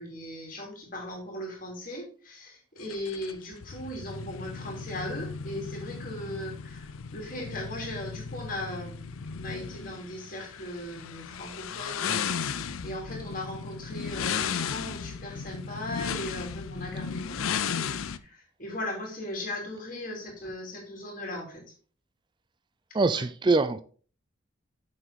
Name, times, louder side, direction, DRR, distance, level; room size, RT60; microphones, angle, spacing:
voice 1, 0.0-21.6 23.1-23.2, left 1 dB, 40° left, 3.0 m, -38 dB
sound 1, 2.8-18.2, left 6 dB, 85° left, 0.6 m, -35 dB
voice 2, 22.9-23.8, right 3 dB, 20° right, 0.3 m, -23 dB
7.5 x 6.3 x 4.1 m
head